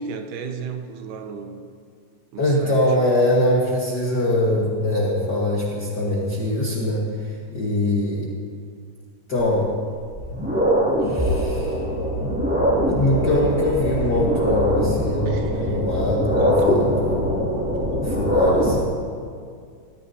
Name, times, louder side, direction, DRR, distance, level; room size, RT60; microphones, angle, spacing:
voice 1, 0.0-1.7 2.3-2.8 15.3-15.8 16.4-16.7 17.1-17.2 17.7-17.9, right 5 dB, 75° right, 6 dB, 2.3 m, -33 dB
voice 2, 2.4-8.3 9.3-9.7 11.0-11.8 12.9-17.4 17.7-18.9, left 1 dB, 55° left, -4 dB, 1.1 m, -23 dB
sound 1, 10.0-18.8, equal, 5° right, 1.5 m, -22 dB
18.0 x 14.0 x 2.7 m, 2.2 s
omnidirectional pair, 3.9 m